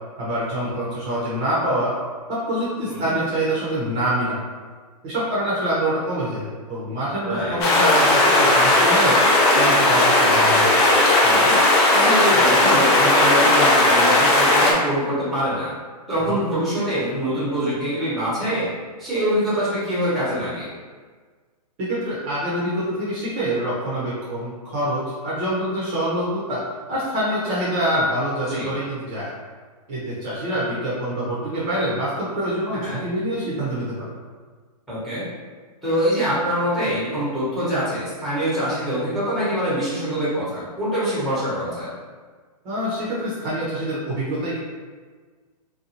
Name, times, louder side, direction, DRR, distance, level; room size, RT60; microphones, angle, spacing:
voice 1, 0.2-1.9 2.3-4.4 5.0-9.2 9.5-10.7 16.3-16.4 21.8-26.6 26.9-29.3 29.9-34.1 42.6-44.6, right 1 dB, 30° right, -8 dB, 0.8 m, -25 dB
voice 2, 7.2-7.6 11.2-11.5 11.9-15.7 16.1-18.7 19.0-20.7 28.5-28.7 32.8-33.0 34.9-35.2 35.8-41.9, equal, ahead, -11 dB, 1.0 m, -24 dB
sound 1, 7.6-14.7, left 1 dB, 40° left, 0.6 m, -16 dB
2.7 x 2.3 x 2.8 m, 1.5 s
hypercardioid pair, 140°, 21 cm